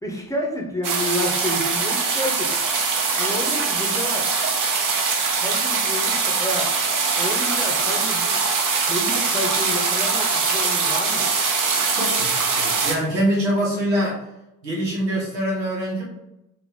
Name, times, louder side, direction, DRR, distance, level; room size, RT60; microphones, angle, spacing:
voice 1, 0.0-2.5 3.2-4.3 5.4-6.7 7.1-8.4 8.9-11.3, left 1 dB, 5° left, 0 dB, 1.0 m, -29 dB
sound 1, 0.8-12.9, right 4 dB, 40° right, 0.9 m, -22 dB
voice 2, 11.9-14.2 14.6-16.0, right 1 dB, 85° right, -4 dB, 1.1 m, -24 dB
4.2 x 2.9 x 3.4 m, 0.89 s
figure-of-eight pair, 40°, 49 cm